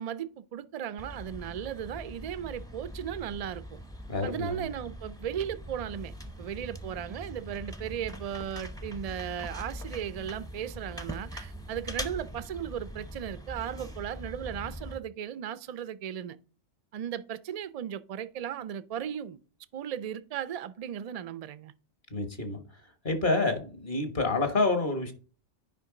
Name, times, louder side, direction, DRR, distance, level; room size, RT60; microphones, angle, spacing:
voice 1, 0.0-3.8 4.2-6.1 6.4-16.4 16.9-19.4 19.7-21.7, right 9 dB, 65° right, 0.3 m, -36 dB
sound 1, 1.0-15.0, equal, 5° left, 0.6 m, -42 dB
voice 2, 4.1-4.7 22.1-22.6 23.0-25.1, left 3 dB, 45° left, 1.4 m, -28 dB
9.3 x 5.2 x 3.8 m
omnidirectional pair, 1.2 m